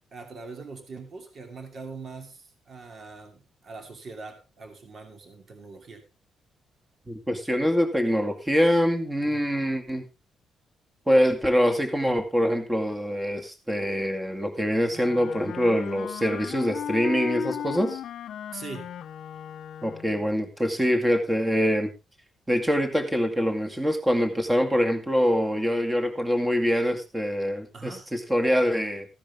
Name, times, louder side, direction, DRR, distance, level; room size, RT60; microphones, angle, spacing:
voice 1, 0.1-6.0 9.2-9.4 18.5-19.0 27.7-28.1, right 4 dB, 40° right, 5 dB, 2.7 m, -42 dB
voice 2, 7.1-10.0 11.1-18.0 19.8-21.9 22.5-29.1, equal, 10° right, 5 dB, 2.0 m, -24 dB
Wind instrument woodwind instrument, 14.9-20.3, left 10 dB, 65° left, 0.7 m, -36 dB
15.0 x 10.0 x 3.5 m, 0.27 s
cardioid pair, 155°, 0 cm